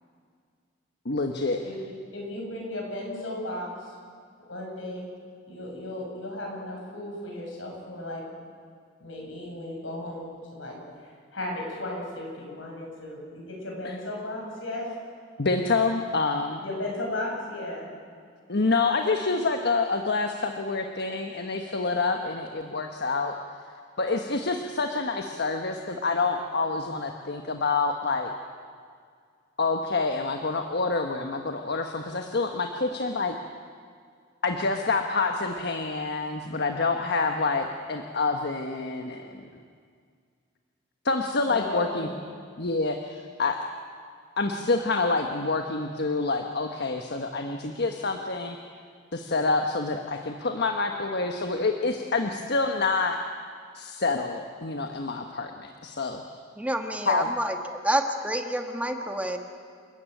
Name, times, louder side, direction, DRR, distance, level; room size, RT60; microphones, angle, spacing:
voice 1, 1.0-1.6 13.8-14.0 15.4-16.6 18.5-23.3 24.0-28.3 29.6-33.4 34.4-39.4 41.0-42.1 42.6-43.6 44.4-48.6 49.1-53.2 53.7-56.2 57.1-57.3, left 3 dB, 60° left, 5 dB, 1.3 m, -27 dB
voice 2, 2.1-3.7 4.5-5.1 5.5-8.2 9.0-14.9 16.6-17.9 41.5-42.4, left 1 dB, 85° left, -1 dB, 7.4 m, -35 dB
voice 3, 56.6-59.4, right 1 dB, 10° right, 4 dB, 1.5 m, -28 dB
29.5 x 14.0 x 9.2 m, 2.1 s
head